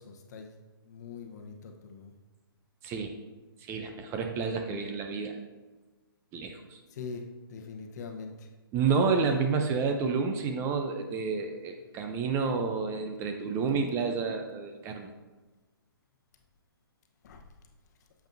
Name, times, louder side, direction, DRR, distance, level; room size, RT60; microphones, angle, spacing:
voice 1, 0.0-2.1 6.9-8.5 9.3-9.4 17.2-17.4, left 5 dB, 45° left, 4 dB, 1.0 m, -43 dB
voice 2, 2.8-3.2 3.6-5.4 6.3-6.8 8.7-15.1, right 5 dB, 20° right, 4 dB, 0.6 m, -30 dB
8.8 x 7.3 x 2.7 m, 1.2 s
figure-of-eight pair, 135°, 13 cm